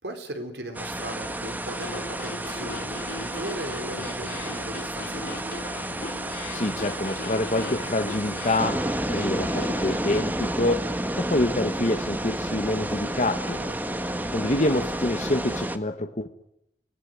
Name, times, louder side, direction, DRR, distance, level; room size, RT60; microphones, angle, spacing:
voice 1, 0.0-5.7 13.5-14.2, right 1 dB, 70° right, 5 dB, 4.3 m, -38 dB
sound 1, 0.7-15.8, right 1 dB, 10° right, 1.5 m, -31 dB
sound 2, 1.7-10.2, left 2 dB, 55° left, 3.1 m, -39 dB
voice 2, 6.5-8.8 9.1-13.6 14.3-16.3, left 1 dB, 40° left, 7 dB, 1.3 m, -26 dB
28.5 x 18.5 x 9.5 m, 0.78 s
head